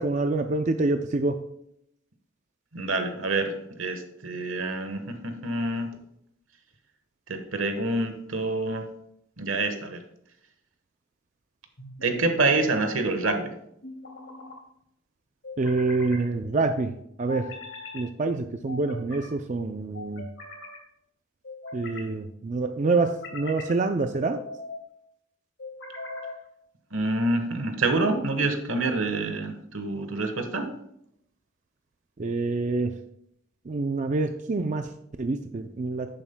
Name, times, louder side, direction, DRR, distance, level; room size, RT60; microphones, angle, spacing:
voice 1, 0.0-1.4 15.6-16.9 17.2-17.5 17.9-20.2 21.7-24.4 32.2-32.9 33.7-34.9 35.2-36.1, right 3 dB, 35° right, 6 dB, 0.4 m, -26 dB
voice 2, 2.7-5.9 7.3-8.8 9.4-10.0 12.0-13.5 26.9-30.7, right 2 dB, 80° right, 7 dB, 1.2 m, -27 dB
sound 1, 11.8-12.4 13.8-14.6 15.4-16.2 17.3-18.1 18.7-19.3 19.9-20.8 21.4-22.1 22.8-23.8 24.3-24.8 25.6-26.4, left 2 dB, 65° left, 2.5 m, -40 dB
10.5 x 9.0 x 2.2 m, 0.75 s
head